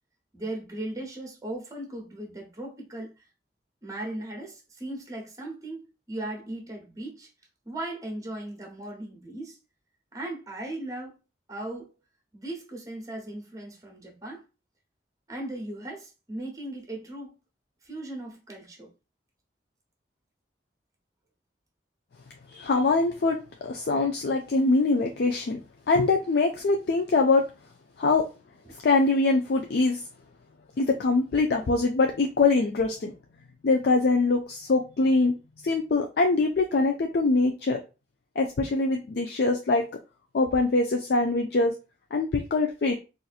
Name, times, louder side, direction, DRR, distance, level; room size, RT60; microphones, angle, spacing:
voice 1, 0.3-3.1 3.8-7.3 7.6-9.6 10.1-11.2 11.5-11.9 12.3-14.4 15.3-17.4 17.8-18.9 28.6-28.7, right 1 dB, 20° right, 1.0 m, -37 dB
voice 2, 22.5-25.6 25.9-27.4 28.0-28.3 28.8-30.0 30.8-33.1 33.6-35.3 35.6-37.8 38.4-39.9 40.3-41.8 42.1-42.9, left 3 dB, 60° left, 0.4 m, -23 dB
4.0 x 2.5 x 2.4 m
head